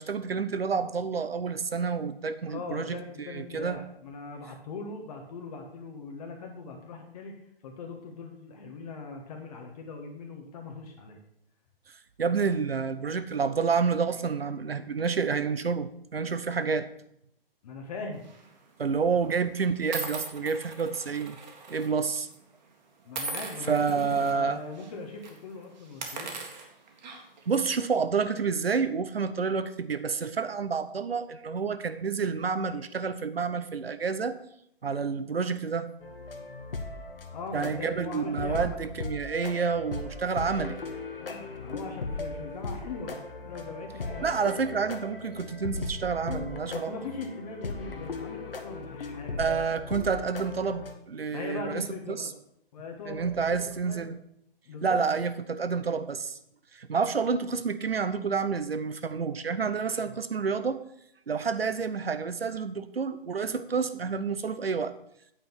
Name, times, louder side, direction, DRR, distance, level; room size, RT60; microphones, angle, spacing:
voice 1, 0.0-3.8 11.9-16.9 18.8-21.4 21.7-22.3 23.7-24.6 27.5-34.4 34.8-35.9 37.5-40.8 44.2-46.9 49.4-52.3 53.1-54.2 54.8-56.4 56.7-60.8 61.3-64.9, right 5 dB, 80° right, 12 dB, 0.9 m, -29 dB
voice 2, 2.5-7.3 7.6-11.2 17.6-18.3 19.2-19.3 23.0-26.4 37.3-38.8 41.2-44.4 46.7-49.6 51.3-52.3 52.7-54.0 54.6-55.0, left 4 dB, 40° left, 3 dB, 1.4 m, -40 dB
sound 1, 18.2-18.5 19.3-19.4 19.9-21.9 22.1-22.3 23.1-24.3 24.7-24.9 25.2-25.4 25.9-27.4, right 4 dB, 50° right, 1.7 m, -39 dB
sound 2, 36.0-50.9, left 3 dB, 70° left, 1.3 m, -38 dB
8.9 x 5.3 x 5.8 m, 0.73 s
figure-of-eight pair, 135°, 29 cm